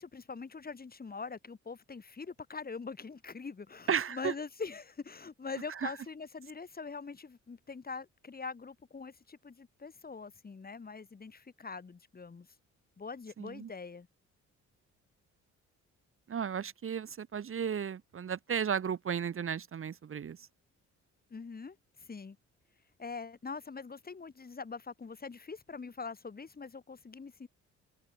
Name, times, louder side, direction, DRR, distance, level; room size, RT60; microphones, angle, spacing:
voice 1, 0.0-12.5 13.0-14.1 21.3-22.4 23.0-27.5, left 4 dB, 30° left, 3.7 m, -43 dB
voice 2, 3.9-4.3 5.8-5.9 13.4-13.7 16.3-20.4, right 7 dB, 45° right, 1.6 m, -34 dB
cardioid pair, 90°, 30 cm